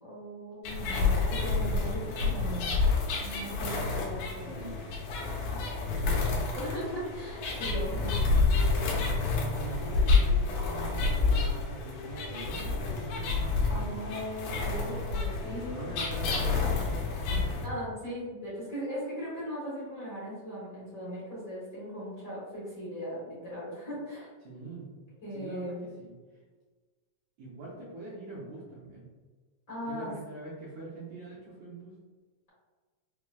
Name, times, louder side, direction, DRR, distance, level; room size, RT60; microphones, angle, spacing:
voice 1, 0.0-2.7 3.2-4.6 5.1-5.3 6.5-8.2 13.7-15.9 17.6-24.3 25.2-25.8 29.7-30.1, equal, 45° left, -10 dB, 1.1 m, -38 dB
sound 1, 0.6-17.6, left 4 dB, 80° left, 2.2 m, -29 dB
voice 2, 4.4-4.9 5.3-6.1 7.8-8.5 8.8-14.0 15.5-17.5 24.4-24.9 25.3-26.1 27.4-29.1 29.8-31.9, right 3 dB, 75° right, -6 dB, 1.6 m, -43 dB
5.7 x 2.1 x 2.3 m, 1.4 s
omnidirectional pair, 3.8 m